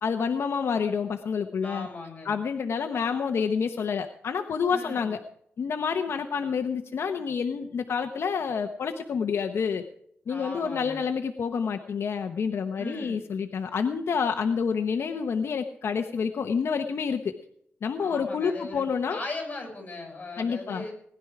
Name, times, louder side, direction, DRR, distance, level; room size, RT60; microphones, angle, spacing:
voice 1, 0.0-1.9 2.3-5.2 5.6-9.8 10.3-17.3 17.8-19.2 20.4-20.8, left 6 dB, 75° left, 6 dB, 0.9 m, -28 dB
voice 2, 1.6-2.3 4.7-5.1 10.3-11.0 12.7-13.2 18.0-20.9, left 2 dB, 35° left, 2 dB, 7.0 m, -38 dB
19.5 x 11.0 x 4.8 m, 0.71 s
wide cardioid pair, 140°, 4 cm